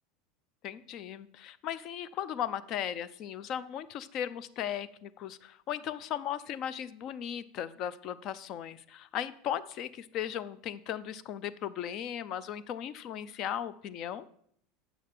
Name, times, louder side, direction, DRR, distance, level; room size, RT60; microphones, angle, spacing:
voice 1, 0.6-14.3, left 10 dB, 50° left, 17 dB, 0.5 m, -37 dB
7.8 x 6.6 x 6.7 m, 0.68 s
hypercardioid pair, 95°, 0 cm